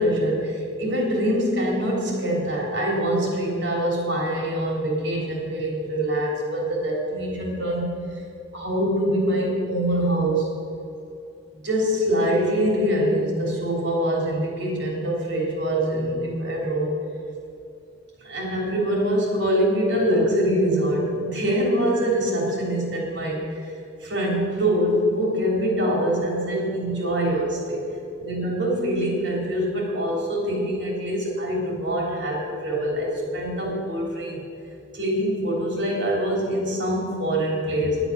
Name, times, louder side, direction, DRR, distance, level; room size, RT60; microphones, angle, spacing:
voice 1, 0.0-8.2 8.5-10.5 11.5-16.9 18.2-23.7 24.0-27.9 28.2-34.4 34.9-38.1, equal, 65° right, -1 dB, 3.3 m, -24 dB
11.0 x 8.1 x 6.8 m, 2.7 s
head